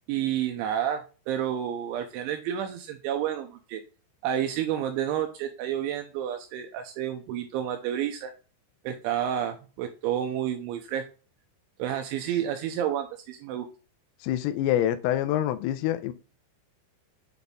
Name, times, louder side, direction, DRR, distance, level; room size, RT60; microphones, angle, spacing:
voice 1, 0.1-3.8 4.2-8.3 8.8-11.1 11.8-13.7, right 10 dB, 85° right, 2.9 m, -30 dB
voice 2, 14.2-16.1, left 12 dB, 90° left, 3.2 m, -26 dB
8.0 x 4.0 x 3.6 m
omnidirectional pair, 5.7 m